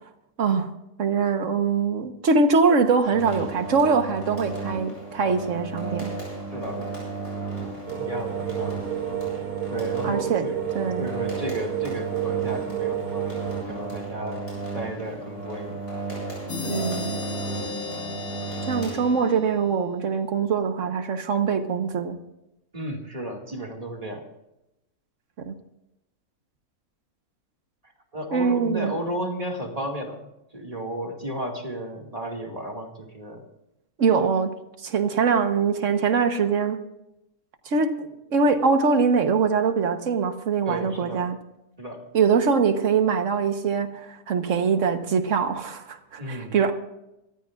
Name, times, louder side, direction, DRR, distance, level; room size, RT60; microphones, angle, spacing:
voice 1, 0.4-0.7 1.0-6.1 10.0-10.5 10.7-11.1 16.6-17.2 18.7-22.2 25.4-25.5 28.3-28.9 34.0-34.5 34.8-36.8 37.6-41.4 42.1-46.7, right 5 dB, 60° right, 8 dB, 1.4 m, -23 dB
sound 1, 3.1-19.5, right 3 dB, 50° left, 7.7 m, -34 dB
voice 2, 6.5-6.8 8.0-8.8 9.7-10.6 11.0-14.4 14.7-15.8 22.7-24.3 28.1-33.4 40.7-41.3 41.8-42.1 46.2-46.5, right 1 dB, 25° right, 1 dB, 2.1 m, -33 dB
sound 2, 7.9-13.6, right 13 dB, 90° right, 1.2 m, -31 dB
sound 3, 16.5-20.1, left 4 dB, 85° left, 2.2 m, -35 dB
25.5 x 14.5 x 2.5 m, 0.90 s
omnidirectional pair, 1.5 m